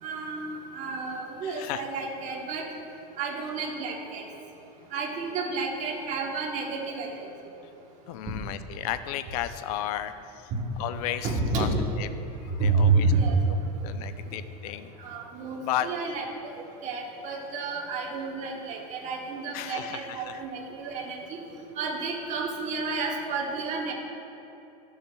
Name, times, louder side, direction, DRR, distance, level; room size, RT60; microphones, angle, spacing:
voice 1, 0.0-2.6 3.2-4.2 4.9-7.3 10.5-10.6 11.2-11.8 12.6-13.4 15.0-16.3 16.6-21.4 21.8-23.9, right 4 dB, 35° right, -1 dB, 1.1 m, -30 dB
voice 2, 1.4-1.9 8.1-12.2 12.4-13.1 13.5-13.6 13.8-15.0 15.6-15.9 19.5-20.4, left 12 dB, 65° left, 11 dB, 0.5 m, -34 dB
12.5 x 7.1 x 2.3 m, 2.9 s
supercardioid pair, 145°, 21 cm